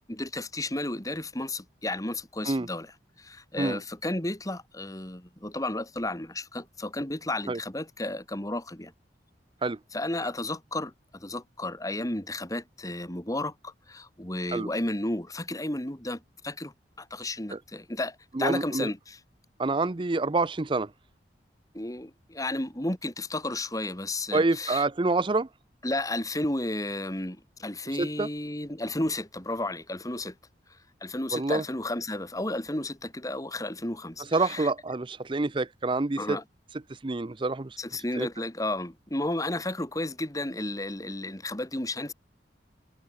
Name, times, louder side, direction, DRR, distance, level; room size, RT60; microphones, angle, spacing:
voice 1, 0.1-8.9 9.9-19.2 21.7-24.8 25.8-30.3 31.0-34.7 36.2-36.4 37.8-42.1, left 1 dB, 20° left, 2.6 m, -33 dB
voice 2, 18.3-18.9 19.6-20.9 24.3-25.5 28.0-28.3 31.3-31.6 34.3-36.4 36.9-37.8 38.2-38.3, right 3 dB, 30° right, 0.6 m, -27 dB
head